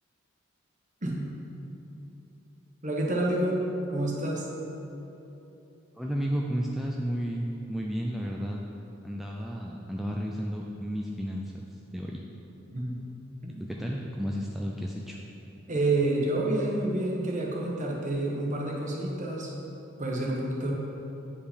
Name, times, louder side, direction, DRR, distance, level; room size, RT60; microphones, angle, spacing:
voice 1, 2.8-3.6 3.9-4.4 12.7-13.0 13.4-13.7 15.7-19.6 20.0-20.7, right 2 dB, 40° right, -2 dB, 1.2 m, -28 dB
voice 2, 6.0-8.6 9.0-11.5 11.9-12.2 13.6-15.2, equal, ahead, -2 dB, 0.4 m, -32 dB
8.5 x 5.0 x 5.1 m, 2.9 s
head